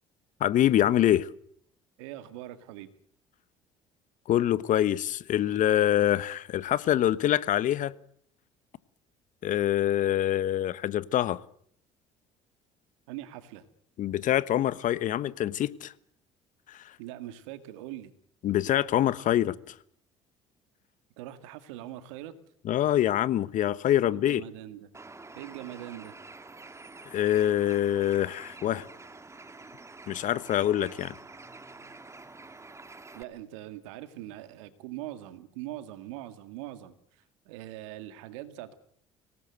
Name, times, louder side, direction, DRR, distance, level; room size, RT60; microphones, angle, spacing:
voice 1, 0.4-1.3 4.3-7.9 9.4-11.4 14.0-15.9 16.7-17.0 18.4-19.7 22.6-24.4 27.1-28.9 30.1-31.1, left 12 dB, 55° left, 1.2 m, -25 dB
voice 2, 2.0-2.9 13.1-13.7 17.0-18.1 21.2-22.3 24.1-24.9 25.4-26.2 33.1-36.9 37.5-38.7, right 14 dB, 75° right, 2.1 m, -42 dB
Bird, 24.9-33.2, right 3 dB, 20° right, 2.2 m, -47 dB
25.0 x 18.5 x 7.9 m
hypercardioid pair, 60°, 16 cm